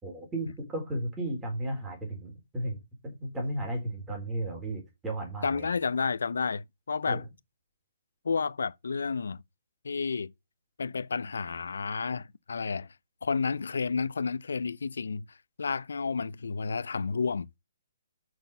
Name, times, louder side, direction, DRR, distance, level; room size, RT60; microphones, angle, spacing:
voice 1, 0.0-5.7 7.1-7.2, right 1 dB, 10° right, 3.9 m, -34 dB
voice 2, 5.4-7.2 8.2-9.4 9.8-10.3 10.8-12.9 13.2-17.5, left 5 dB, 85° left, 0.7 m, -31 dB
6.4 x 6.2 x 6.8 m
hypercardioid pair, 165°, 0 cm